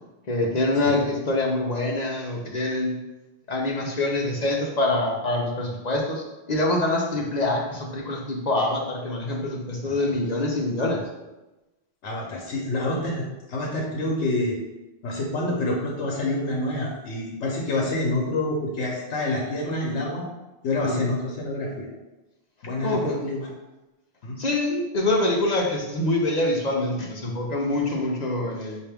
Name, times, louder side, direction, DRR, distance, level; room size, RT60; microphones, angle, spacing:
voice 1, 0.3-3.0 3.5-11.0 20.8-21.1 22.8-23.2 24.4-28.8, left 2 dB, 45° left, -1 dB, 0.6 m, -25 dB
voice 2, 12.0-14.6 15.0-20.3 20.6-21.9 22.6-23.5 24.2-24.4, left 2 dB, 90° left, -1 dB, 1.0 m, -27 dB
5.7 x 2.5 x 3.4 m, 1.0 s
omnidirectional pair, 1.1 m